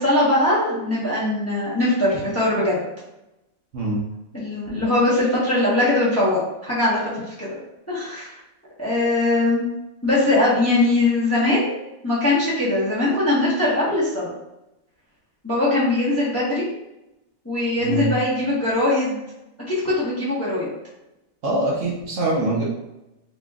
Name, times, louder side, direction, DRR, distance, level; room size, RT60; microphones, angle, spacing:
voice 1, 0.0-2.8 4.3-7.6 7.9-8.3 8.8-9.7 10.0-11.7 12.0-14.3 15.4-16.6 17.4-19.2 19.8-20.7, left 2 dB, 10° left, -9 dB, 0.9 m, -21 dB
voice 2, 17.8-18.1 21.4-22.6, right 2 dB, 65° right, -4 dB, 1.1 m, -23 dB
4.0 x 3.1 x 2.3 m, 0.92 s
omnidirectional pair, 1.5 m